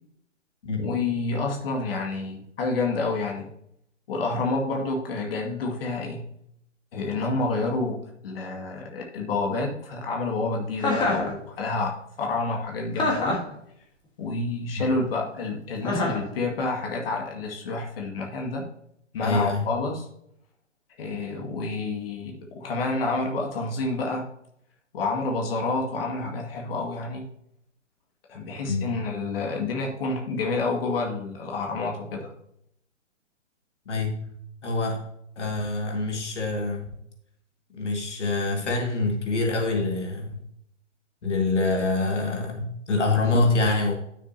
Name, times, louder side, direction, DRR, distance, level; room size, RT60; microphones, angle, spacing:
voice 1, 0.7-3.5 4.1-6.2 6.9-13.5 14.2-18.7 19.1-20.1 21.0-24.3 24.9-27.2 28.3-32.3, left 3 dB, 50° left, 0 dB, 2.1 m, -29 dB
Chuckle chortle, 10.8-11.3 13.0-13.5 15.8-16.3, left 2 dB, 10° left, 1.6 m, -25 dB
voice 2, 19.2-19.7 28.7-28.9 33.9-34.3 34.6-35.1 35.4-36.9 37.7-40.4 41.2-43.9, left 3 dB, 70° left, 2 dB, 2.1 m, -25 dB
12.0 x 6.8 x 2.8 m, 0.74 s
hypercardioid pair, 140°, 37 cm